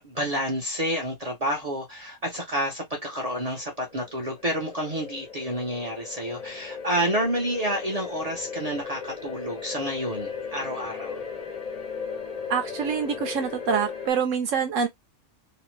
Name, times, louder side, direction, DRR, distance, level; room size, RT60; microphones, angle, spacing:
voice 1, 0.0-11.2, equal, 45° right, 0.5 m, -29 dB
sound 1, 3.6-14.1, left 6 dB, 50° left, 0.4 m, -37 dB
voice 2, 12.5-14.9, right 6 dB, 70° right, 0.8 m, -26 dB
2.9 x 2.1 x 3.1 m
omnidirectional pair, 1.6 m